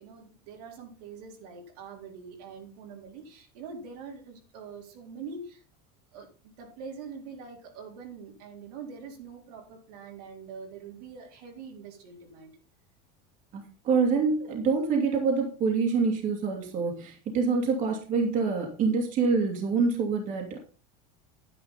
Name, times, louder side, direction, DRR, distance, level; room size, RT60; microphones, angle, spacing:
voice 1, 0.0-5.6 6.1-12.5, right 5 dB, 80° right, 3.9 m, -44 dB
voice 2, 13.8-20.6, right 4 dB, 40° right, 2.5 m, -26 dB
10.0 x 10.0 x 4.0 m
supercardioid pair, 140°, 20 cm